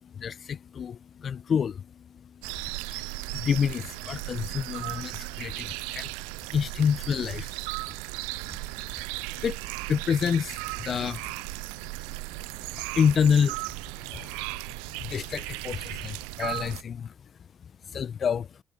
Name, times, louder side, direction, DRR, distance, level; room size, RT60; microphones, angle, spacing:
voice 1, 0.0-6.2 6.5-7.6 8.5-8.6 9.3-9.6 9.9-11.5 12.7-14.5 15.0-17.1 17.6-18.6, left 7 dB, 50° left, 0.8 m, -29 dB
sound 1, 2.4-16.8, right 29 dB, 80° right, 0.3 m, -36 dB
hypercardioid pair, 55°, 0 cm